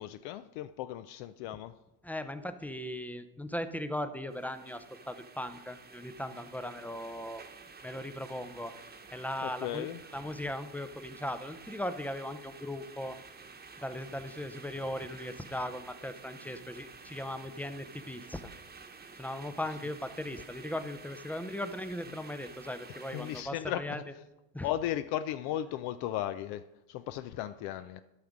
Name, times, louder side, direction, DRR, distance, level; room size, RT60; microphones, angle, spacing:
voice 1, 0.0-1.7 9.4-10.0 23.1-24.0 24.6-28.0, left 12 dB, 60° left, 11 dB, 0.6 m, -36 dB
voice 2, 2.0-7.4 7.8-8.7 9.1-13.2 13.8-18.5 19.2-24.1 24.5-24.7, left 1 dB, 5° left, 10 dB, 0.5 m, -38 dB
sound 1, 4.3-23.4, right 4 dB, 20° right, 1.1 m, -51 dB
13.0 x 5.8 x 5.1 m, 0.98 s
supercardioid pair, 100°, 45 cm